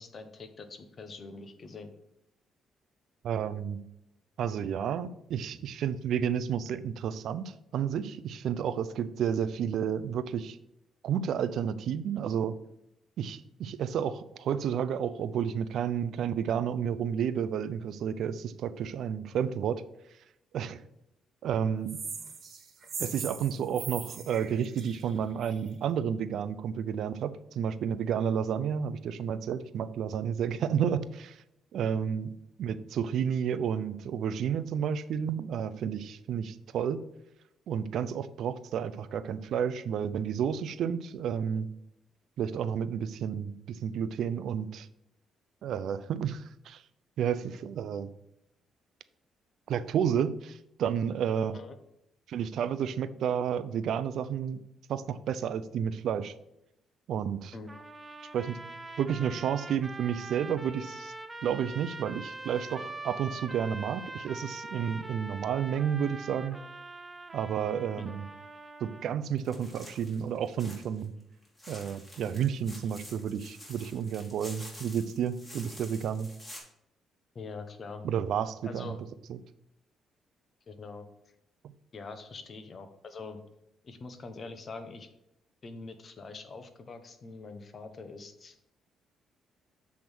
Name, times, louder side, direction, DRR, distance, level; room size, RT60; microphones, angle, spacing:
voice 1, 0.0-1.9 51.5-51.8 57.5-57.7 68.0-68.1 77.3-78.1 78.7-79.0 80.7-81.1 81.9-83.4 83.8-85.1 85.6-88.6, left 4 dB, 45° left, 8 dB, 1.0 m, -44 dB
voice 2, 3.2-3.8 4.4-10.6 11.0-12.5 13.2-19.8 20.5-20.8 21.4-22.0 23.0-31.4 31.7-32.3 32.6-37.1 37.7-41.7 42.4-44.9 45.6-46.8 47.2-48.1 49.7-51.6 52.3-54.6 54.9-56.3 57.1-57.5 58.3-58.6 59.0-61.1 61.4-66.6 67.3-68.2 68.8-71.1 71.7-76.3 78.0-79.0, right 8 dB, 70° right, 14 dB, 0.5 m, -31 dB
sound 1, 21.9-25.7, right 5 dB, 50° right, 1.5 m, -40 dB
sound 2, 57.7-69.2, right 2 dB, 20° right, 0.7 m, -43 dB
sound 3, 69.4-71.0 71.4-76.6, left 1 dB, 15° left, 2.9 m, -49 dB
7.5 x 3.6 x 6.1 m, 0.83 s
cardioid pair, 90°, 0 cm